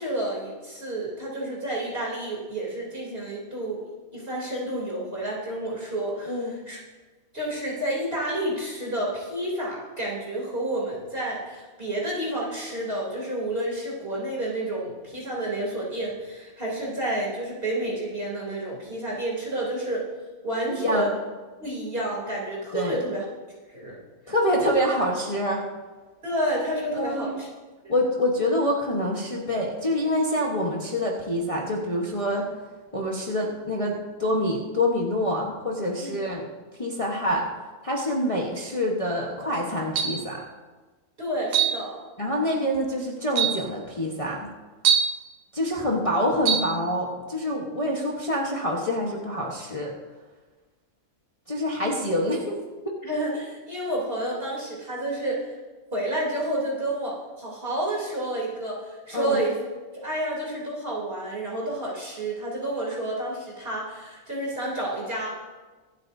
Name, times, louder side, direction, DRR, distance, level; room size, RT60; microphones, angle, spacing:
voice 1, 0.0-3.8 4.1-6.8 7.3-20.0 20.4-21.2 21.6-23.2 23.7-24.0 26.2-27.5 27.8-27.9 36.0-36.2 41.2-42.0 53.0-55.6 55.9-59.6 59.9-65.3, right 1 dB, 40° right, -5 dB, 3.6 m, -30 dB
voice 2, 6.3-6.6 20.8-21.1 22.7-22.9 24.3-25.6 26.9-27.3 27.9-32.5 32.9-36.5 36.8-37.5 37.8-40.4 42.2-44.5 45.5-49.9 51.5-52.9 59.1-59.4, left 1 dB, 25° left, -3 dB, 1.3 m, -26 dB
sound 1, 40.0-40.3 41.5-41.8 42.7-42.8 43.3-43.6 44.8-45.2 46.4-46.7, right 8 dB, 80° right, 1.2 m, -22 dB
24.5 x 8.2 x 2.7 m, 1.3 s
omnidirectional pair, 1.5 m